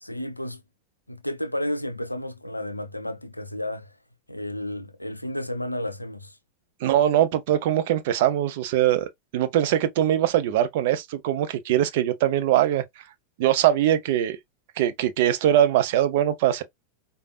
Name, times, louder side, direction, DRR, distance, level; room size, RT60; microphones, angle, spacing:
voice 1, 0.0-0.6 1.1-3.9 4.3-6.3, left 1 dB, 85° left, 0.5 m, -32 dB
voice 2, 6.8-9.0 9.3-12.8 13.4-14.4 14.8-16.6, right 11 dB, 50° right, 0.6 m, -22 dB
5.0 x 2.3 x 2.4 m
figure-of-eight pair, 90°, 0 cm